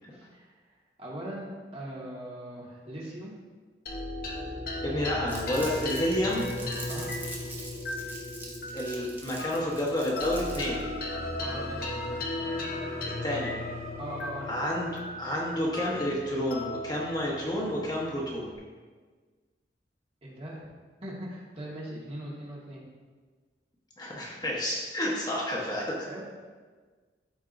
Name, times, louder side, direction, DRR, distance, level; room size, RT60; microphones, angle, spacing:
voice 1, 0.1-0.5 1.0-3.3 6.9-7.1 11.4-12.0 14.0-14.5 20.2-20.7 21.0-22.8 25.8-26.2, right 1 dB, 35° right, -5 dB, 1.7 m, -40 dB
sound 1, 3.9-18.6, left 2 dB, 55° left, 1.0 m, -36 dB
voice 2, 4.8-6.4 8.7-10.8 13.2-13.5 14.5-14.9 15.2-18.5 24.0-26.1, left 1 dB, 25° left, -4 dB, 1.2 m, -30 dB
Crumpling crinkling, 5.3-10.8, right 2 dB, 10° right, 1.0 m, -43 dB
13.0 x 4.6 x 2.6 m, 1.4 s
head